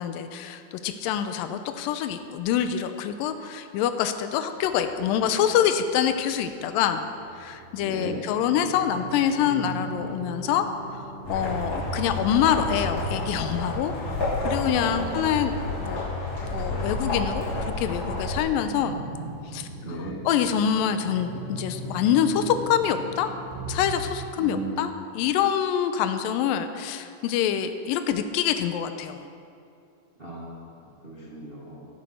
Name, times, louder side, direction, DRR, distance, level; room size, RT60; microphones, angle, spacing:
voice 1, 0.0-7.1 7.4-13.9 14.4-16.0 16.5-19.0 19.5-23.3 23.7-29.2, left 9 dB, 80° left, 9 dB, 2.2 m, -26 dB
sound 1, 4.6-23.9, right 2 dB, 85° right, 3.6 m, -41 dB
voice 2, 7.8-8.2 14.8-15.1 19.8-20.1 24.4-24.8 30.2-30.6 31.0-31.9, right 2 dB, 35° right, -6 dB, 0.8 m, -36 dB
sound 2, 11.2-18.4, left 2 dB, 30° left, 3.8 m, -30 dB
16.0 x 10.5 x 4.4 m, 2.5 s
omnidirectional pair, 4.3 m